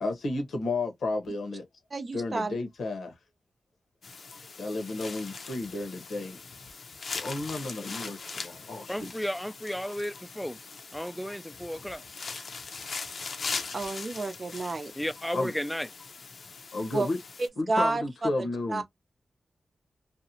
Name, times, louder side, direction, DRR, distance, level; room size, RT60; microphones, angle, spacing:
voice 1, 0.0-1.6 2.1-3.1 4.6-6.4 7.1-9.1 15.3-15.5 16.7-17.2 17.6-18.8, left 2 dB, 90° left, 0.9 m, -32 dB
voice 2, 1.9-2.6 13.7-14.9 16.9-17.1 17.7-18.8, right 3 dB, 50° right, 0.6 m, -30 dB
sound 1, 4.0-17.5, left 4 dB, 65° left, 0.5 m, -41 dB
voice 3, 8.9-10.6 10.9-12.0 15.0-15.9, equal, 5° left, 0.3 m, -33 dB
2.6 x 2.1 x 2.7 m
cardioid pair, 60°, 0 cm